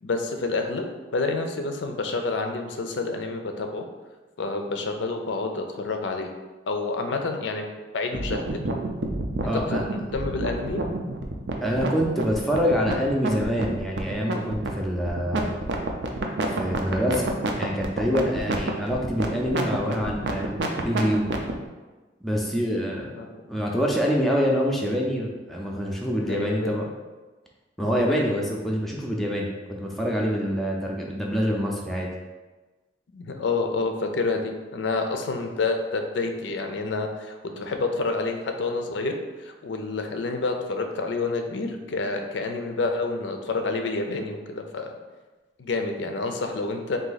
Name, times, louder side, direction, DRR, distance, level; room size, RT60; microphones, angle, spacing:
voice 1, 0.0-0.8 1.1-3.8 4.4-6.3 6.7-7.7 7.9-8.6 9.4-10.8 22.9-23.3 26.2-26.8 28.0-28.4 33.1-45.0 45.6-47.0, left 3 dB, 80° left, 5 dB, 0.4 m, -28 dB
sound 1, 8.1-21.5, right 2 dB, 75° right, 0.5 m, -28 dB
voice 2, 9.4-9.8 11.6-15.5 16.6-17.3 17.5-21.3 22.2-23.1 23.5-26.9 27.8-32.1, equal, ahead, -2 dB, 0.4 m, -26 dB
3.8 x 2.7 x 3.9 m, 1.2 s
head